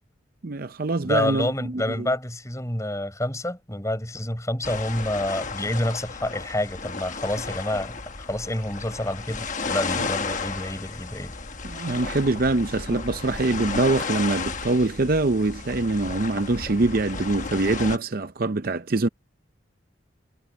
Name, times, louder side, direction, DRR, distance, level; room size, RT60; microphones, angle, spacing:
voice 1, 0.4-2.1 10.0-10.1 11.6-19.1, right 2 dB, 50° right, 0.6 m, -24 dB
voice 2, 1.0-11.3, left 1 dB, 15° left, 6.7 m, -28 dB
sound 1, 4.6-18.0, left 4 dB, 40° left, 1.2 m, -33 dB
head